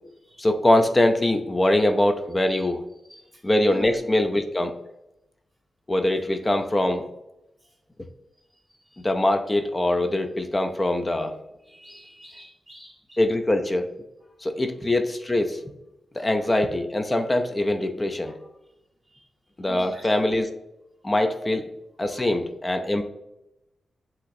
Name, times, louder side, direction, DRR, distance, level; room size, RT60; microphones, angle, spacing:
voice 1, 0.4-2.8 3.4-4.7 5.9-7.1 9.0-11.3 13.2-13.9 14.4-15.6 16.1-18.3 19.6-20.5 21.0-21.6 22.0-23.0, left 1 dB, 25° left, 6 dB, 0.4 m, -23 dB
voice 2, 3.0-3.4 3.7-4.0 7.6-7.7 8.5-9.1 11.6-13.2 14.6-14.7 16.2-16.3 18.2-18.3 19.1-19.3 19.7-20.1 22.1-22.3, equal, ahead, -2 dB, 1.4 m, -46 dB
5.7 x 2.9 x 2.6 m, 0.90 s
cardioid pair, 75°, 0 cm